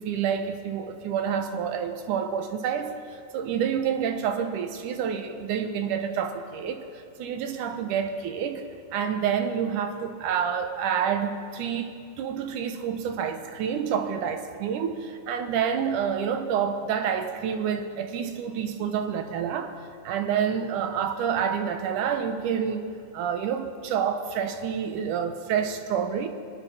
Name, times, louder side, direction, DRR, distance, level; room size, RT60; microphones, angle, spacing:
voice 1, 0.0-8.6 8.9-19.8 20.0-22.8 23.1-26.3, right 7 dB, 85° right, 7 dB, 2.5 m, -28 dB
23.5 x 10.5 x 5.8 m, 2.3 s
omnidirectional pair, 3.6 m